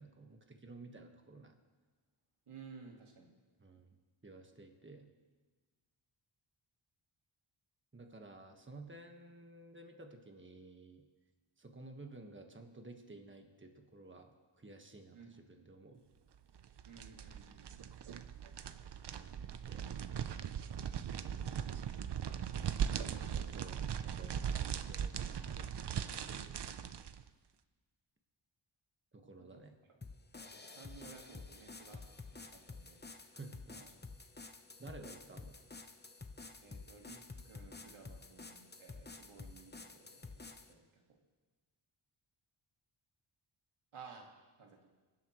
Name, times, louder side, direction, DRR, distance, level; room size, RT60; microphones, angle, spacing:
voice 1, 0.0-1.6 3.6-3.9 4.2-5.1 7.9-11.0 11.6-14.3 14.6-16.0 19.1-19.4 19.7-19.9 21.1-21.8 22.6-22.7 23.1-26.6 29.1-29.7 33.3-33.8 34.8-35.6, right 2 dB, 25° right, 4 dB, 1.5 m, -54 dB
voice 2, 2.5-3.3 15.1-15.4 16.8-17.7 23.1-23.6 29.2-29.6 29.9-30.0 30.4-33.0 33.7-33.9 36.6-41.0 43.9-44.3 44.6-44.8, right 5 dB, 90° right, 1 dB, 1.9 m, -56 dB
sound 1, 16.5-27.2, right 8 dB, 55° right, 0.7 m, -39 dB
sound 2, 30.0-40.7, left 3 dB, 20° left, 0.8 m, -51 dB
24.0 x 11.5 x 3.1 m, 1.4 s
wide cardioid pair, 70°, 49 cm